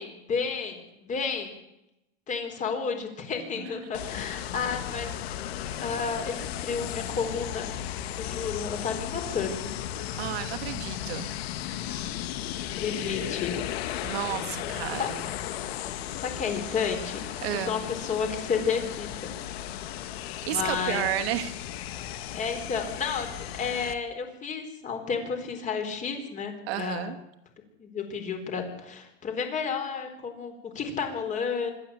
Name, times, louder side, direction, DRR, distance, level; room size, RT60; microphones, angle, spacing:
voice 1, 0.0-1.6 2.3-5.1 5.8-7.7 8.2-9.8 12.7-13.6 14.6-15.1 16.2-19.3 20.5-21.1 22.3-23.3 23.5-27.1 27.8-31.7, left 5 dB, 25° left, 5 dB, 4.3 m, -31 dB
sound 1, 3.9-23.9, left 11 dB, 75° left, 1.9 m, -35 dB
voice 2, 10.2-11.3 14.0-15.2 17.4-17.8 20.5-21.5 26.7-27.2, right 11 dB, 70° right, 8 dB, 2.7 m, -31 dB
25.5 x 12.5 x 8.4 m, 0.87 s
supercardioid pair, 155°, 32 cm